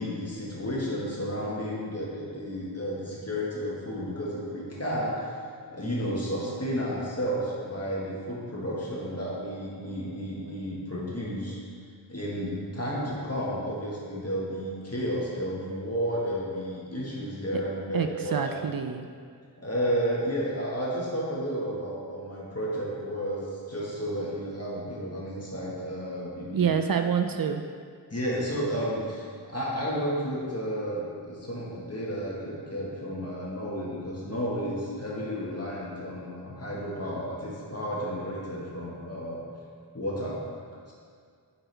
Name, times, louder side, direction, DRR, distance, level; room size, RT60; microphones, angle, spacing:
voice 1, 0.0-5.1 5.7-11.6 12.1-18.5 19.6-26.7 28.1-39.5 39.9-40.4 40.9-41.0, equal, 35° left, -5 dB, 1.6 m, -32 dB
voice 2, 17.9-19.1 26.5-27.6, right 7 dB, 55° right, 7 dB, 0.5 m, -27 dB
8.0 x 6.0 x 3.4 m, 2.1 s
wide cardioid pair, 50°, 42 cm